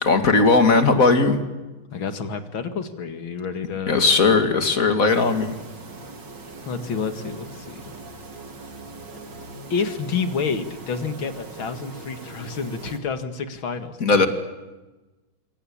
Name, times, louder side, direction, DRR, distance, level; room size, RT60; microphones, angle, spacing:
voice 1, 0.0-1.4 3.9-5.5 14.0-14.3, left 3 dB, 40° left, 8 dB, 2.7 m, -18 dB
voice 2, 1.9-4.1 4.3-4.5 6.6-7.8 9.7-14.3, left 5 dB, 75° left, 9 dB, 2.8 m, -29 dB
sound 1, 5.1-13.0, right 3 dB, 60° right, 3.5 m, -40 dB
27.0 x 23.5 x 8.7 m, 1.1 s
omnidirectional pair, 2.2 m